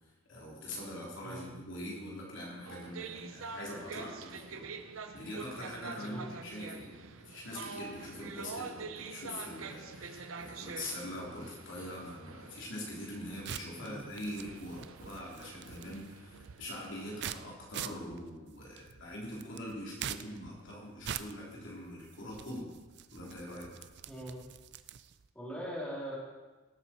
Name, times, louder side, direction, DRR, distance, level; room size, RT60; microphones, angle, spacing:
voice 1, 0.3-4.6 5.1-22.7 23.1-23.7, left 1 dB, 65° left, -4 dB, 3.6 m, -43 dB
voice 2, 1.2-1.5 6.0-6.3 13.8-14.0 24.1-24.4 25.3-26.2, equal, 5° left, -7 dB, 3.9 m, -41 dB
sound 1, 2.6-17.6, right 4 dB, 85° right, 0.8 m, -46 dB
sound 2, 13.0-25.3, right 9 dB, 60° right, 0.5 m, -45 dB
18.0 x 8.1 x 4.5 m, 1.2 s
head